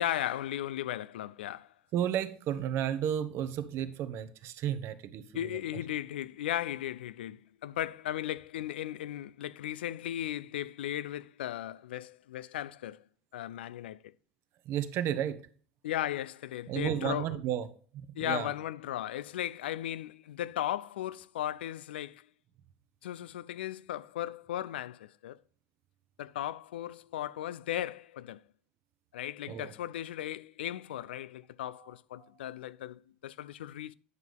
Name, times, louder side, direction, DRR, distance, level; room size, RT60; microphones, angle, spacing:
voice 1, 0.0-1.7 5.3-13.0 13.3-14.0 15.8-17.3 18.2-22.3 23.0-25.4 26.2-28.4 29.1-33.9, left 12 dB, 85° left, 0.4 m, -36 dB
voice 2, 1.9-5.6 14.6-15.4 16.7-17.7 17.9-18.5 29.5-29.7 32.2-32.3, right 10 dB, 55° right, 0.9 m, -33 dB
9.6 x 6.0 x 3.5 m
hypercardioid pair, 85°, 5 cm